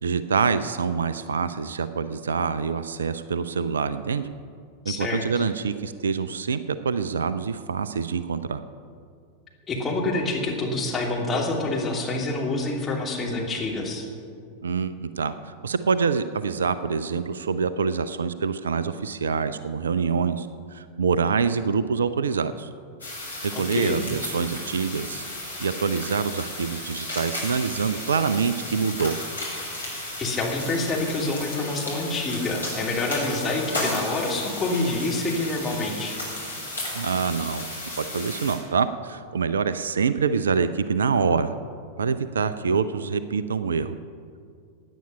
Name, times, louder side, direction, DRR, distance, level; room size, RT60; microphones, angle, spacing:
voice 1, 0.0-4.3 4.9-8.6 14.6-22.7 23.4-25.2 25.6-29.2 36.9-37.7 38.0-41.6 42.0-44.0, right 5 dB, 70° right, 13 dB, 0.5 m, -26 dB
voice 2, 4.9-5.4 9.7-14.1 23.5-24.0 30.2-36.2, left 2 dB, 20° left, -1 dB, 2.6 m, -27 dB
sound 1, 23.0-38.5, left 1 dB, 80° left, 3.8 m, -34 dB
16.5 x 9.9 x 5.5 m, 2.3 s
figure-of-eight pair, 90°, 0 cm